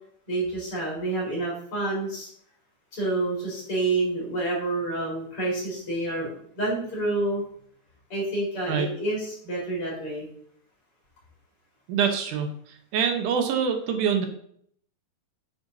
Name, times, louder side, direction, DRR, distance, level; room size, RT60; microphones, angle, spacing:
voice 1, 0.3-2.3 2.9-6.3 6.6-7.4 8.1-10.3, right 2 dB, 35° left, -5 dB, 5.2 m, -28 dB
voice 2, 11.9-12.5 12.9-14.3, right 7 dB, 65° right, 4 dB, 2.3 m, -24 dB
10.0 x 9.4 x 2.8 m, 0.64 s
omnidirectional pair, 4.2 m